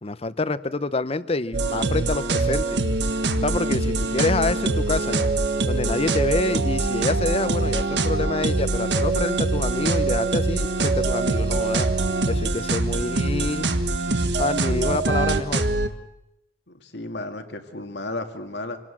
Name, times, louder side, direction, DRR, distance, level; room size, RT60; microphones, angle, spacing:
voice 1, 0.0-2.8 3.4-5.3 5.7-11.9 12.3-13.7 14.4-15.6, left 3 dB, 35° left, 14 dB, 0.8 m, -27 dB
sound 1, 1.5-15.9, right 2 dB, 80° right, 1.5 m, -23 dB
voice 2, 16.7-18.8, left 2 dB, 80° left, 6 dB, 2.1 m, -33 dB
26.0 x 18.5 x 7.6 m, 0.90 s
head